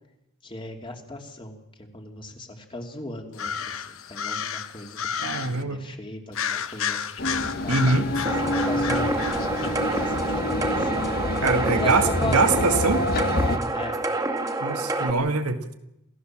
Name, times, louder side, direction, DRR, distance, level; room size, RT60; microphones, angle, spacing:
voice 1, 0.4-7.0 7.6-11.0 11.7-12.6 13.7-14.0, left 2 dB, 20° left, 3 dB, 2.9 m, -37 dB
sound 1, 3.3-5.6 6.3-10.3, left 7 dB, 65° left, 1.2 m, -32 dB
voice 2, 5.2-5.8 7.7-8.1 11.4-13.0 14.6-15.6, right 3 dB, 80° right, 6 dB, 2.2 m, -23 dB
sound 2, 7.2-13.6, left 1 dB, 45° left, 1.6 m, -27 dB
sound 3, 8.3-15.1, right 2 dB, 15° right, 2.1 m, -28 dB
28.0 x 15.5 x 7.6 m, 0.86 s
head